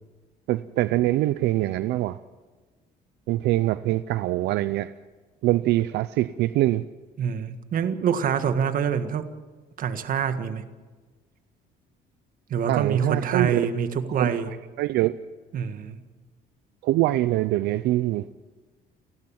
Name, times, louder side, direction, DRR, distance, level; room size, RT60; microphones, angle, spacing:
voice 1, 0.5-2.2 3.3-4.9 5.4-6.8 12.7-13.6 14.2-14.3 14.8-15.2 16.8-18.3, right 16 dB, 80° right, 14 dB, 0.6 m, -23 dB
voice 2, 7.2-9.3 9.8-10.6 12.5-14.5 15.5-16.0, right 7 dB, 55° right, 9 dB, 1.7 m, -26 dB
30.0 x 12.0 x 7.3 m, 1.4 s
cardioid pair, 110°, 17 cm